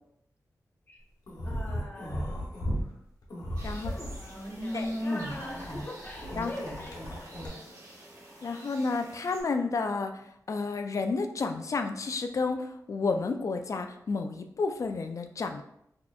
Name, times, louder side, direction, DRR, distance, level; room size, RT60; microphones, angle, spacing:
sound 1, 1.3-2.8 3.2-7.5, equal, 80° left, 0.8 m, -35 dB
voice 1, 1.4-2.5 3.7-7.7, left 1 dB, 30° left, -2 dB, 0.8 m, -43 dB
sound 2, 3.6-9.4, right 1 dB, 55° right, 1.0 m, -48 dB
voice 2, 8.4-10.2 10.5-15.6, left 4 dB, 55° left, 6 dB, 0.3 m, -31 dB
4.1 x 2.8 x 2.4 m, 0.74 s
wide cardioid pair, 115°, 6 cm